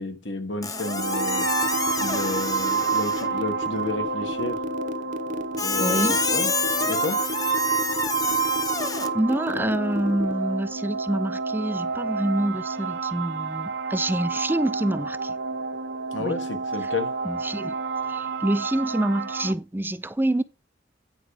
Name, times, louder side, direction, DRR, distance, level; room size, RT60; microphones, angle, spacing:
voice 1, 0.0-1.5 2.0-4.7 5.6-6.5 6.8-7.2 16.1-17.1, left 3 dB, 80° left, 1.6 m, -31 dB
Squeak, 0.6-3.4 5.6-9.1, left 4 dB, 20° left, 0.7 m, -28 dB
sound 1, 0.7-19.5, right 5 dB, 85° right, 1.0 m, -29 dB
sound 2, 1.0-10.3, left 2 dB, 45° right, 1.0 m, -33 dB
voice 2, 5.8-6.2 9.1-15.3 16.2-16.4 16.8-16.9 17.2-17.8 18.1-20.4, right 1 dB, 10° right, 0.4 m, -26 dB
9.7 x 5.0 x 4.9 m
head